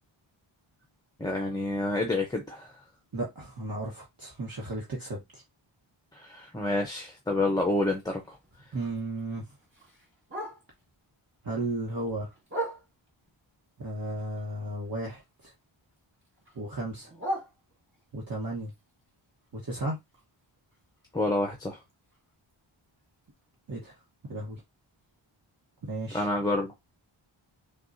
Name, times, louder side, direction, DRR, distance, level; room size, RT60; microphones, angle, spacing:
voice 1, 1.2-2.7 6.1-8.4 21.1-21.8 26.1-26.7, left 2 dB, 10° left, 0.7 m, -28 dB
voice 2, 3.1-5.4 8.7-9.5 11.4-12.3 13.8-15.5 16.5-17.1 18.1-18.7 19.5-20.0 23.7-24.0 24.3-24.6 25.8-26.3, right 2 dB, 45° right, 1.2 m, -34 dB
Bark, 7.8-11.0 11.4-13.3 13.7-15.6 15.8-18.1 18.6-22.5 22.8-22.9 23.2-23.6 24.1-24.2 24.5-24.6 25.1-25.2, right 1 dB, 25° right, 1.7 m, -42 dB
5.9 x 2.4 x 2.6 m
wide cardioid pair, 105°, 50 cm